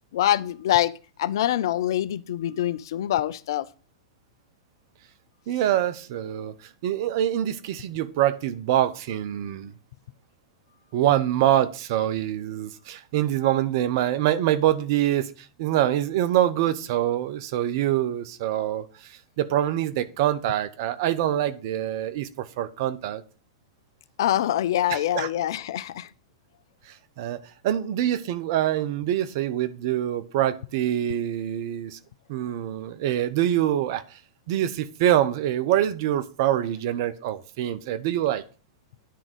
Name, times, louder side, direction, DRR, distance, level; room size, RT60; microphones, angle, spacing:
voice 1, 0.1-0.9 1.2-3.7 24.2-26.1, left 12 dB, 65° left, 0.4 m, -24 dB
voice 2, 5.5-6.5 6.8-9.7 10.9-15.3 15.6-23.2 24.9-25.3 27.2-27.4 27.6-32.0 32.3-34.0 34.5-38.4, right 12 dB, 55° right, 0.7 m, -25 dB
10.0 x 3.6 x 5.2 m
hypercardioid pair, 105°, 2 cm